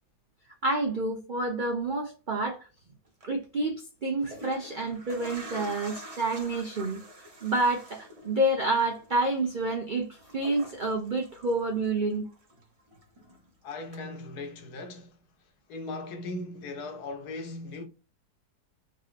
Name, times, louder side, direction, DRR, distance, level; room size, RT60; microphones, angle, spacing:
voice 1, 0.6-2.7 3.2-7.0 7.4-10.1 10.3-12.3, right 2 dB, 60° right, 0.5 m, -28 dB
sound 1, 3.1-3.3 4.1-12.1 12.4-13.5 13.9-14.0, right 1 dB, 30° right, 0.8 m, -46 dB
voice 2, 13.6-15.2 15.7-17.9, left 2 dB, 70° left, 1.3 m, -38 dB
3.9 x 2.6 x 2.5 m
omnidirectional pair, 1.8 m